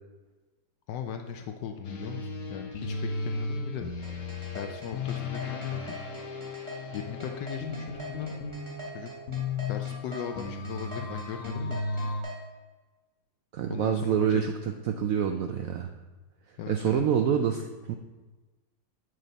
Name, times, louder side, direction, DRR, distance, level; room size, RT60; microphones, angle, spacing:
voice 1, 0.9-4.2 4.5-6.0 6.9-8.3 8.9-9.1 9.7-11.8 13.7-14.5 16.6-17.0, left 8 dB, 75° left, 5 dB, 1.1 m, -38 dB
sound 1, 1.8-12.2, left 3 dB, 50° left, 1.1 m, -35 dB
sound 2, 4.0-12.4, left 1 dB, 15° right, 1.9 m, -42 dB
voice 2, 13.5-14.5 14.9-15.9 16.7-18.0, right 8 dB, 80° right, 5 dB, 0.7 m, -26 dB
8.6 x 6.4 x 4.0 m, 1.2 s
omnidirectional pair, 2.0 m